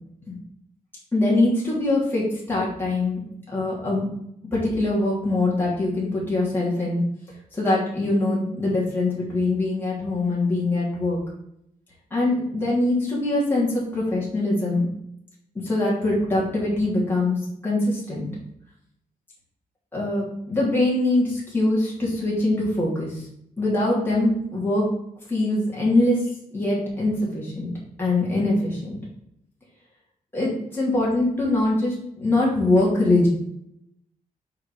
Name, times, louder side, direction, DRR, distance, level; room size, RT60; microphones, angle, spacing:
voice 1, 1.1-3.2 3.5-4.1 4.5-7.0 7.6-11.2 12.1-14.9 15.6-17.4 17.6-18.3 19.9-23.2 23.6-24.9 25.3-26.2 26.5-27.7 28.0-29.0 30.3-33.3, left 2 dB, 15° left, -7 dB, 2.8 m, -23 dB
5.6 x 5.1 x 4.9 m, 0.76 s
wide cardioid pair, 115°, 14 cm